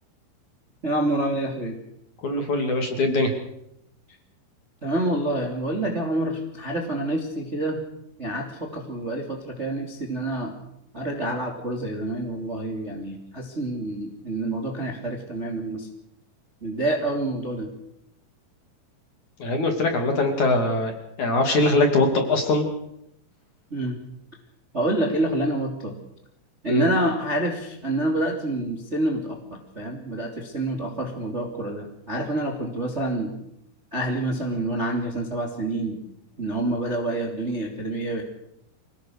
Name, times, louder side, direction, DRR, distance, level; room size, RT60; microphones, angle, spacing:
voice 1, 0.8-1.7 4.8-7.8 8.2-10.5 10.9-15.9 16.6-17.7 23.7-24.0 24.7-26.0 26.6-33.3 33.9-36.0 36.4-38.2, right 1 dB, 20° right, 2 dB, 2.3 m, -27 dB
voice 2, 2.2-3.3 19.4-20.9 21.2-22.7 26.7-26.9, left 2 dB, 45° left, 4 dB, 3.4 m, -22 dB
27.0 x 18.5 x 6.6 m, 0.79 s
omnidirectional pair, 5.6 m